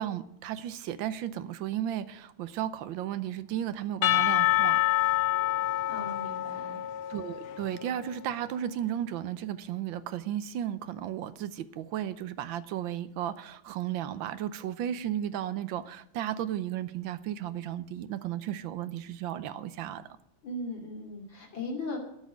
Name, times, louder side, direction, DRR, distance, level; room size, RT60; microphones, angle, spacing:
voice 1, 0.0-4.8 7.1-20.2, right 11 dB, 80° right, 13 dB, 1.5 m, -34 dB
Percussion / Church bell, 4.0-8.0, left 16 dB, 85° left, 1.6 m, -27 dB
voice 2, 5.9-6.8 20.4-22.0, left 2 dB, 70° left, 0 dB, 3.4 m, -38 dB
13.5 x 6.5 x 9.6 m, 0.83 s
omnidirectional pair, 2.2 m